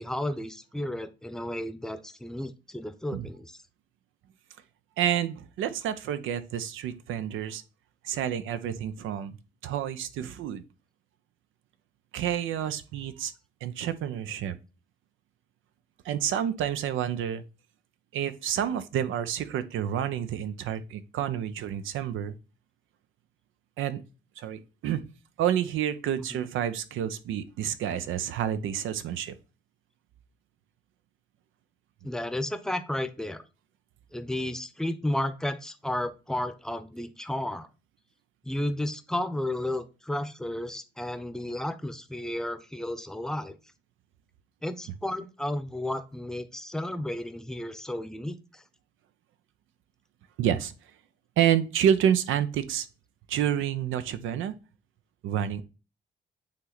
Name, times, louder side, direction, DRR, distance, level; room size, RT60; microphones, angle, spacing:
voice 1, 0.0-3.5 32.0-33.4 34.1-37.7 38.4-43.6 44.6-48.6, left 1 dB, 5° left, 0.7 m, -33 dB
voice 2, 5.0-7.6 8.0-9.4 9.6-10.6 12.1-13.3 13.6-14.6 16.0-17.4 18.1-22.4 23.8-24.0 24.4-25.1 25.4-29.3 50.4-50.7 51.4-52.9 53.3-54.5 55.2-55.6, right 9 dB, 85° right, 0.7 m, -29 dB
8.6 x 3.2 x 4.0 m
cardioid pair, 90°, 20 cm